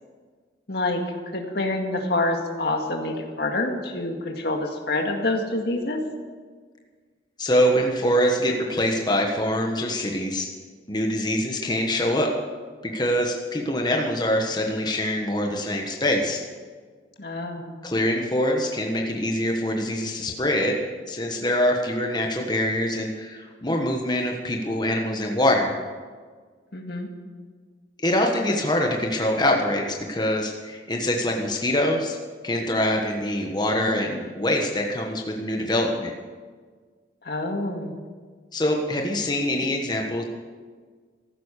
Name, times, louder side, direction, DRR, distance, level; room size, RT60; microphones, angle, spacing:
voice 1, 0.7-6.0 17.2-17.8 26.7-27.1 37.2-38.0, left 2 dB, 60° left, 3 dB, 2.1 m, -27 dB
voice 2, 7.4-10.5 10.9-12.3 12.8-16.4 17.8-20.8 21.1-25.7 28.0-32.2 32.4-36.1 38.5-40.2, left 1 dB, 25° left, 1 dB, 1.3 m, -24 dB
14.5 x 12.0 x 6.6 m, 1.5 s
head